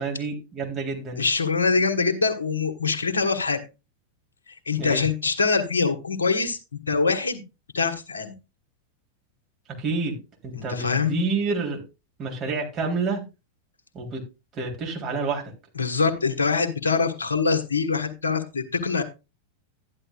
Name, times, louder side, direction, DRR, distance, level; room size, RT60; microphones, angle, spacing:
voice 1, 0.0-1.3 4.8-5.0 9.8-10.2 10.4-11.8 12.2-13.3 13.9-14.2 14.5-15.5, right 4 dB, 30° right, 3.6 m, -28 dB
voice 2, 1.2-3.6 4.5-7.4 7.7-8.3 10.5-11.2 15.7-19.0, left 4 dB, 70° left, 1.6 m, -24 dB
12.5 x 11.0 x 2.4 m
figure-of-eight pair, 90°, 0 cm